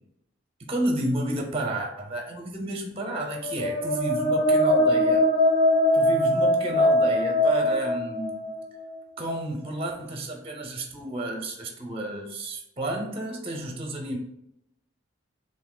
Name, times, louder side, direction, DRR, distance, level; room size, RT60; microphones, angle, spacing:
voice 1, 0.7-5.3 5.9-8.4 9.2-14.2, right 1 dB, 30° right, 2 dB, 0.6 m, -31 dB
sound 1, 3.2-9.0, left 1 dB, 85° left, 1.2 m, -22 dB
6.8 x 2.7 x 2.2 m, 0.78 s
head